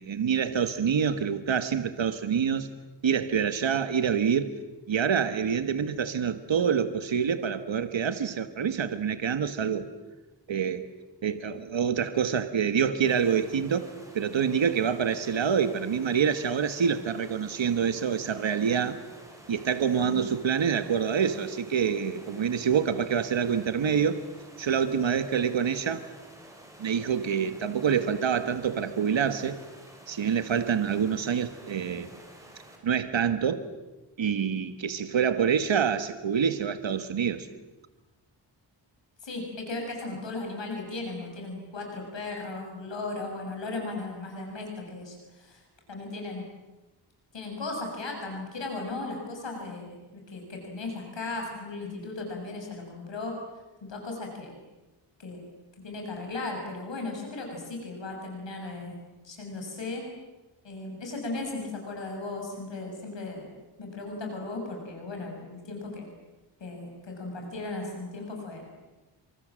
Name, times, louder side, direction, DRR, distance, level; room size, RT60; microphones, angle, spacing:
voice 1, 0.0-2.7 3.0-4.5 4.9-9.8 10.5-10.9 11.2-19.0 19.5-24.2 24.6-26.0 26.8-29.6 30.1-32.2 32.8-33.7 34.2-37.5, right 7 dB, 80° right, 11 dB, 1.6 m, -26 dB
sound 1, 13.1-32.8, right 1 dB, 5° right, 7.1 m, -51 dB
voice 2, 39.2-45.6 45.9-46.4 47.3-53.4 53.8-54.5 55.2-55.4 55.8-60.0 60.6-63.5 63.8-66.1 66.6-68.9, left 3 dB, 75° left, 1 dB, 7.1 m, -36 dB
29.5 x 25.5 x 7.6 m, 1.1 s
wide cardioid pair, 120°, 45 cm